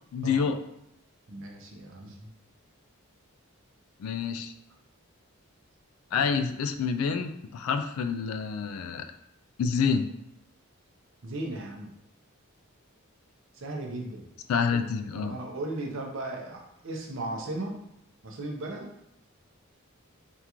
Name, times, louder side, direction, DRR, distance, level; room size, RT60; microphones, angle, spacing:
voice 1, 0.1-0.6 4.0-4.5 6.1-9.0 9.6-10.1 14.5-15.4, left 6 dB, 75° left, 8 dB, 0.3 m, -28 dB
voice 2, 1.3-2.3 6.1-6.3 11.2-11.9 13.5-14.3 14.7-14.8 15.1-17.8 18.2-18.9, right 2 dB, 60° right, 0 dB, 0.6 m, -36 dB
3.5 x 2.4 x 2.9 m, 0.78 s
head